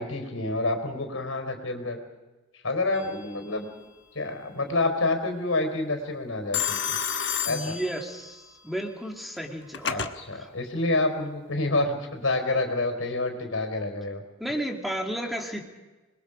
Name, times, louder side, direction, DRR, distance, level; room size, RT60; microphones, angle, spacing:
voice 1, 0.0-2.0 2.6-3.8 4.1-7.0 7.4-7.8 9.8-14.2, left 2 dB, 85° left, 6 dB, 4.2 m, -28 dB
Telephone, 2.9-3.5 6.5-8.4 9.4-10.1, left 8 dB, 60° left, 1.3 m, -31 dB
voice 2, 7.5-10.5 14.4-15.6, equal, ahead, 1 dB, 2.3 m, -33 dB
26.5 x 22.0 x 5.1 m, 1.2 s
head